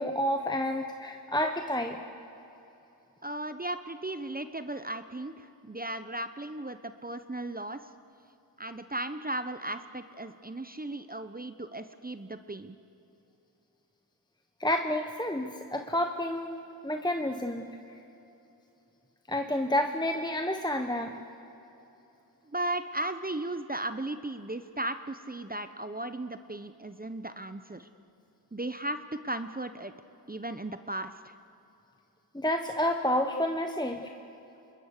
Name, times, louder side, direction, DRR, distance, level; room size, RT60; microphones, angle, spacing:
voice 1, 0.0-2.0 14.6-17.8 19.3-21.2 32.3-34.1, left 1 dB, 10° left, 4 dB, 1.3 m, -30 dB
voice 2, 3.2-7.8 8.6-12.8 22.5-27.9 28.5-29.9 30.3-31.3, right 1 dB, 25° right, 10 dB, 1.0 m, -36 dB
26.0 x 21.5 x 6.8 m, 3.0 s
cardioid pair, 45°, 39 cm